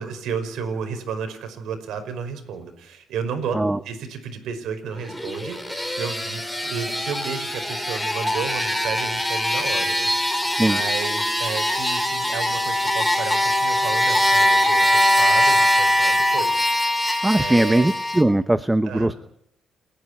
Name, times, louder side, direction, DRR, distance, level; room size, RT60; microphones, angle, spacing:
voice 1, 0.0-3.6 3.8-16.6 16.9-17.9 18.8-19.1, right 6 dB, 80° right, 7 dB, 5.3 m, -32 dB
sound 1, 5.0-18.2, equal, 5° left, 4.3 m, -22 dB
voice 2, 17.2-19.1, right 1 dB, 10° right, 13 dB, 0.8 m, -20 dB
29.0 x 10.5 x 9.9 m, 0.73 s
cardioid pair, 90°, 0 cm